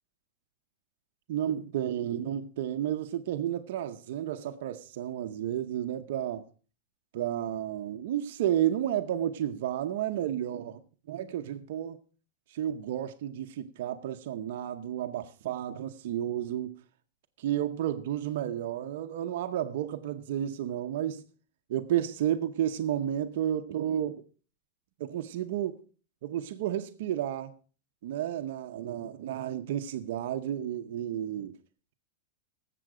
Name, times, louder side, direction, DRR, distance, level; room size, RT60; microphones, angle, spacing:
voice 1, 1.3-6.5 7.1-10.8 11.1-12.0 12.5-16.8 17.4-21.3 21.7-24.2 25.0-25.8 26.2-27.5 28.0-31.6, right 11 dB, 50° right, 0.8 m, -32 dB
18.5 x 7.7 x 4.9 m
supercardioid pair, 180°, 0 cm